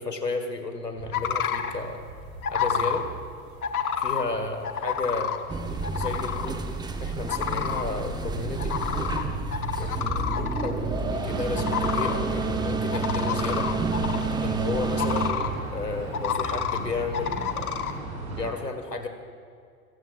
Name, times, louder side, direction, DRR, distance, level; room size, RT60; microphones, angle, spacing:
voice 1, 0.0-2.0 2.5-3.1 4.0-5.4 5.9-6.6 7.0-8.8 9.8-13.7 14.4-17.8 18.4-19.1, left 3 dB, 85° left, 6 dB, 1.8 m, -32 dB
sound 1, 1.0-18.5, right 2 dB, 65° right, 4.2 m, -36 dB
sound 2, 1.1-1.8 2.4-3.0 3.6-4.2 4.6-5.4 5.8-6.5 7.3-7.8 8.6-9.2 9.5-10.7 11.5-12.2 12.9-14.3 15.0-15.5 16.1-16.8 17.1-17.9, left 8 dB, 65° left, 1.3 m, -29 dB
sound 3, 5.5-15.3, right 4 dB, 10° right, 0.9 m, -30 dB
28.0 x 18.0 x 2.5 m, 2.3 s
figure-of-eight pair, 90°, 47 cm